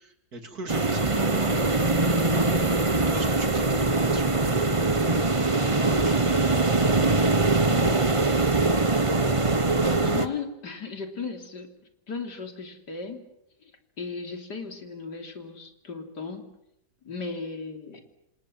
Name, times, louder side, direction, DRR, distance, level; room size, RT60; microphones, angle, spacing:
voice 1, 0.0-1.9 3.1-6.9, right 3 dB, 65° right, 6 dB, 3.5 m, -40 dB
sound 1, 0.7-10.3, right 3 dB, 20° right, 1.3 m, -22 dB
voice 2, 7.7-8.1 10.0-11.7 12.1-13.2 13.6-13.7 14.0-16.5 17.0-18.1, left 4 dB, 85° left, 6 dB, 3.9 m, -36 dB
28.0 x 26.5 x 7.7 m, 0.79 s
omnidirectional pair, 1.8 m